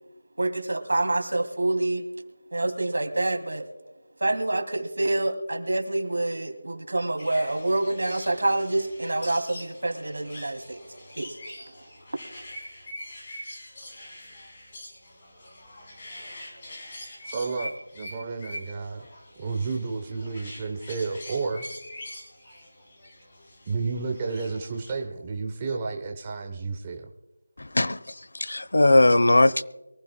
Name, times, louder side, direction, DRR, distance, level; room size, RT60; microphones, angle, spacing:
voice 1, 0.4-2.0 2.5-3.7 4.2-10.8 11.2-11.4, right 2 dB, 65° right, 6 dB, 2.6 m, -27 dB
sound 1, 7.2-24.9, left 1 dB, 25° left, 4.0 m, -44 dB
voice 2, 17.2-19.1 19.4-21.7 23.7-27.1, right 4 dB, 15° right, 2 dB, 0.8 m, -31 dB
voice 3, 27.6-28.0 28.4-29.6, left 2 dB, 70° left, 15 dB, 0.8 m, -19 dB
23.5 x 15.0 x 2.2 m, 1.1 s
figure-of-eight pair, 175°, 0 cm